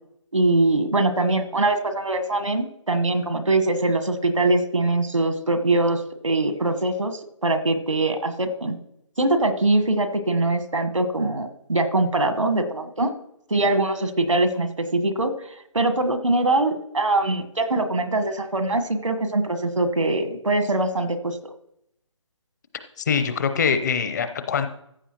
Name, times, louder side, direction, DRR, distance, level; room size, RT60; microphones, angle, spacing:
voice 1, 0.3-8.8 9.2-13.1 13.5-15.3 15.7-21.4, right 2 dB, 85° right, 8 dB, 1.3 m, -22 dB
voice 2, 23.0-24.7, left 6 dB, 35° left, 9 dB, 0.7 m, -23 dB
15.0 x 8.2 x 3.0 m, 0.77 s
figure-of-eight pair, 150°, 16 cm